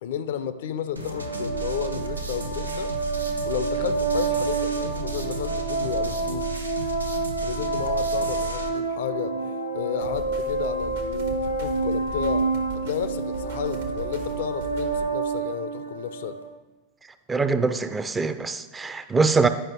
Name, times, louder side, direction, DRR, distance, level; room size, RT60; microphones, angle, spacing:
voice 1, 0.0-2.9 3.4-6.6 7.4-9.4 9.7-16.4, left 9 dB, 55° left, 0.4 m, -32 dB
sound 1, 1.0-16.4, right 3 dB, 90° left, 1.1 m, -28 dB
sound 2, 1.0-8.7, right 3 dB, 85° right, 0.7 m, -34 dB
sound 3, 10.0-15.1, right 5 dB, 60° right, 0.9 m, -38 dB
voice 2, 17.3-19.5, right 4 dB, 15° right, 0.4 m, -23 dB
9.8 x 5.3 x 3.6 m
figure-of-eight pair, 90°, 0 cm